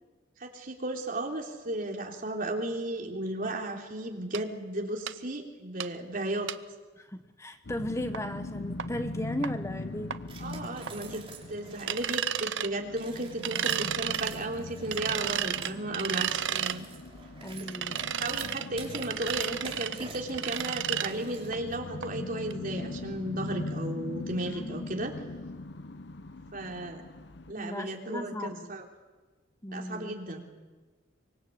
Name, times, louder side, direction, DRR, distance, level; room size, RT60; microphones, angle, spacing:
voice 1, 0.4-6.5 10.4-11.2 11.5-16.9 18.2-25.1 26.5-27.0 27.5-28.8 29.7-30.4, right 1 dB, 50° right, 1 dB, 3.4 m, -34 dB
sound 1, 4.3-4.4 5.1-5.2 5.8-5.9 6.5-6.6 8.1-8.2 8.8-8.9 9.4-9.5 10.1-10.2 10.9-11.0 11.9-12.7 13.4-14.3 14.9-16.8 17.7-18.7 18.9-20.0 20.3-21.1 21.5-21.6 22.0-22.1 22.5-22.6, right 10 dB, 70° right, 0.7 m, -32 dB
voice 2, 7.0-10.1 17.4-18.0 24.4-25.1 27.6-28.7 29.6-30.1, left 1 dB, 15° left, 8 dB, 0.9 m, -37 dB
sound 2, 7.6-27.5, left 2 dB, 60° left, 1.0 m, -41 dB
sound 3, 10.3-12.3 12.9-21.7, right 5 dB, 30° right, 3.5 m, -48 dB
24.5 x 23.0 x 8.5 m, 1.3 s
head